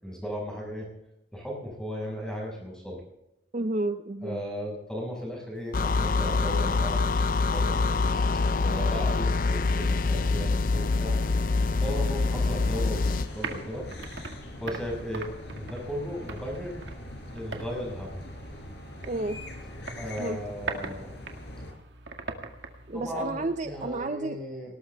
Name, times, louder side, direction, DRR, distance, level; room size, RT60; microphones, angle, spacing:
voice 1, 0.0-0.9 1.3-3.0 4.2-8.0 8.6-11.2 11.8-13.9 14.6-16.8 17.3-18.1 20.0-21.1 22.9-24.7, equal, 5° left, -1 dB, 6.0 m, -36 dB
voice 2, 3.5-4.4 19.1-19.4 20.2-20.4 22.9-24.4, right 2 dB, 40° right, 9 dB, 0.6 m, -31 dB
sound 1, 5.7-13.3, left 3 dB, 45° left, 0.4 m, -25 dB
sound 2, 7.5-21.7, left 1 dB, 65° left, 4.7 m, -42 dB
sound 3, 12.7-24.1, right 3 dB, 75° right, 2.1 m, -42 dB
19.5 x 18.5 x 3.5 m, 0.89 s
head